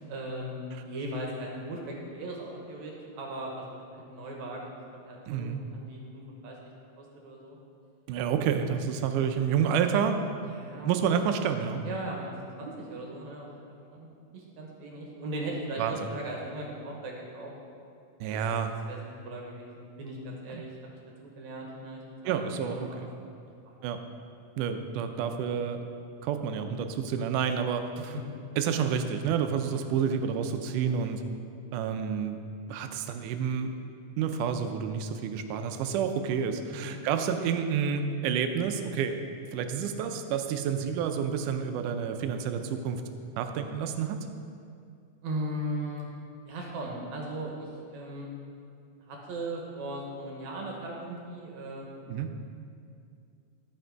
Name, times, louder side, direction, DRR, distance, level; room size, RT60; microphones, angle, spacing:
voice 1, 0.1-0.6 0.8-4.7 5.0-6.6 7.0-7.6 10.4-10.9 11.8-12.3 12.6-17.5 18.3-18.4 18.9-20.7 21.4-23.0 23.7-23.8 28.0-28.1 36.7-37.0 45.2-46.1 46.5-48.3 49.0-51.9, right 1 dB, 70° right, -1 dB, 2.3 m, -38 dB
voice 2, 5.3-5.6 8.1-10.2 10.8-11.8 15.8-16.0 18.2-18.7 20.5-20.6 22.3-23.1 23.8-24.0 24.6-25.8 26.2-28.2 28.6-31.2 31.7-32.4 32.7-33.7 34.2-39.2 39.5-43.0 43.4-44.2 52.1-52.3, right 7 dB, 90° right, 7 dB, 2.2 m, -29 dB
11.5 x 5.9 x 4.6 m, 2.4 s
omnidirectional pair, 3.6 m